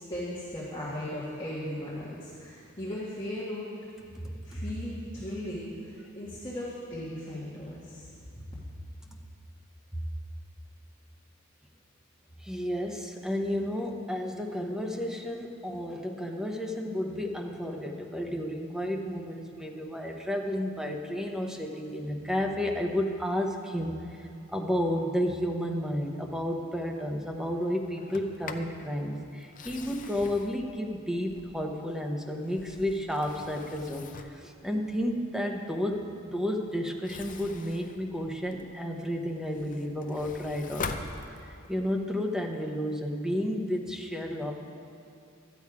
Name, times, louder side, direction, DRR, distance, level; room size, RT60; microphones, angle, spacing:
voice 1, 0.0-3.7 4.4-8.1, left 1 dB, 25° left, -8 dB, 1.6 m, -37 dB
voice 2, 4.1-4.6 9.1-9.2 9.9-10.0 12.4-41.1 41.4-44.5, equal, 5° right, 1 dB, 0.8 m, -32 dB
Sliding door, 28.0-28.8 29.4-31.8 32.3-34.5 36.9-38.8 39.3-41.8, left 4 dB, 40° left, 0.5 m, -42 dB
13.0 x 8.5 x 4.8 m, 2.5 s
head